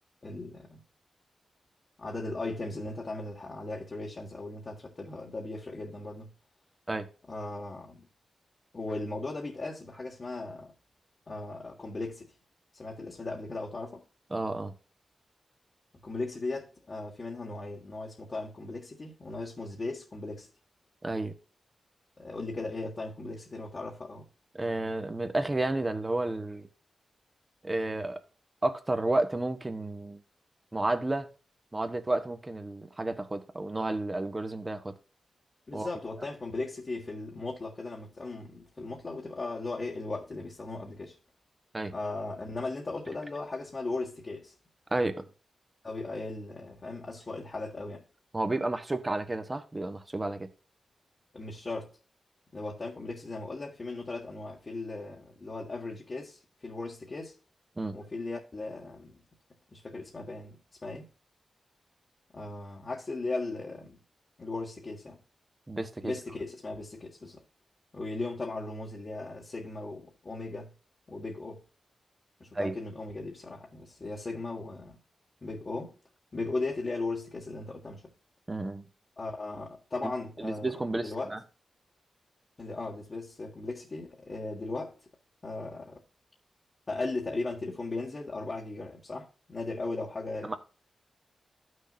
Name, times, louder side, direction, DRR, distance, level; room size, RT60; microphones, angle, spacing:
voice 1, 0.2-0.8 2.0-6.3 7.3-8.0 8.7-10.7 11.3-12.3 12.7-14.0 16.0-20.5 22.2-24.3 35.7-41.2 41.9-44.5 45.8-48.0 51.3-52.0 52.5-57.3 57.9-59.2 59.7-61.1 62.3-64.0 64.4-65.2 66.0-67.4 67.9-70.7 71.1-71.6 72.4-75.0 75.4-75.9 76.3-78.1 79.2-81.3 82.6-84.9 85.4-86.0 86.9-90.6, left 2 dB, 40° left, 1.7 m, -37 dB
voice 2, 14.3-14.7 21.0-21.3 24.5-26.7 27.6-28.2 28.6-30.2 30.7-31.3 31.7-35.0 35.7-35.9 41.7-41.9 44.9-45.2 48.3-50.5 57.8-58.0 65.7-66.1 72.5-72.7 78.5-78.9 80.0-80.1 80.4-81.4 90.4-90.6, right 2 dB, 20° right, 1.2 m, -31 dB
14.0 x 6.4 x 2.6 m
wide cardioid pair, 95°, 0 cm